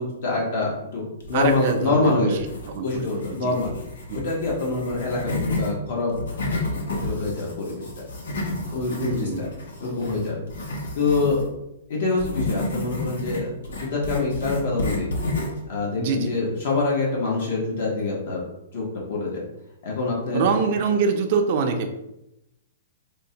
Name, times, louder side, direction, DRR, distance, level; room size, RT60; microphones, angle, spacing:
voice 1, 0.0-2.3 2.8-3.7 4.1-6.1 7.0-8.0 8.7-9.5 9.8-10.4 11.0-11.4 11.9-15.1 15.7-18.4 18.7-19.4 19.8-20.4, left 3 dB, 60° left, -3 dB, 0.9 m, -25 dB
sound 1, 1.2-2.0 2.4-5.7 6.1-11.5 12.2-15.6, left 2 dB, 85° left, 1.0 m, -31 dB
voice 2, 1.3-3.5 4.1-4.3 9.0-9.5 16.0-16.3 20.3-21.9, right 5 dB, 40° right, 4 dB, 0.4 m, -25 dB
5.0 x 2.1 x 2.7 m, 0.88 s
hypercardioid pair, 170°, 0 cm